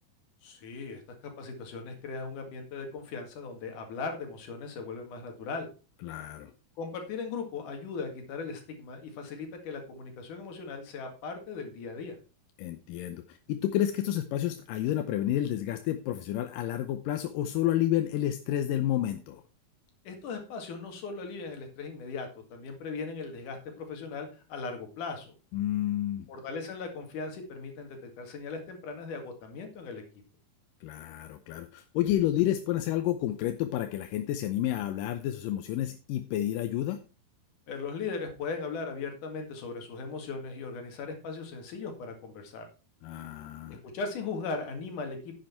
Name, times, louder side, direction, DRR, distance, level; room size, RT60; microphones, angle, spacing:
voice 1, 0.4-5.7 6.8-12.2 20.0-25.3 26.3-30.0 37.7-42.7 43.9-45.4, left 4 dB, 60° left, 4 dB, 3.4 m, -38 dB
voice 2, 6.0-6.5 12.6-19.4 25.5-26.3 30.8-37.0 43.0-43.8, left 12 dB, 75° left, 8 dB, 2.2 m, -30 dB
10.5 x 7.8 x 4.4 m, 0.33 s
omnidirectional pair, 4.3 m